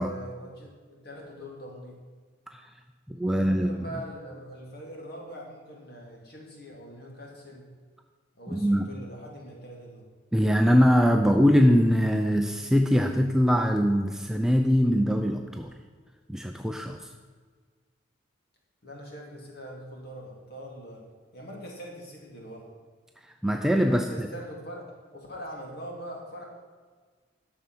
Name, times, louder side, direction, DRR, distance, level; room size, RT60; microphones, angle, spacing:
voice 1, 0.0-2.0 3.2-7.7 8.3-10.0 18.8-21.0 21.3-22.7 23.8-24.8 25.1-26.4, equal, 50° left, -1 dB, 2.6 m, -42 dB
voice 2, 3.1-3.7 8.5-8.9 10.3-15.7 16.3-17.1 23.4-24.3, equal, ahead, 3 dB, 0.4 m, -22 dB
11.0 x 6.9 x 5.9 m, 1.5 s
head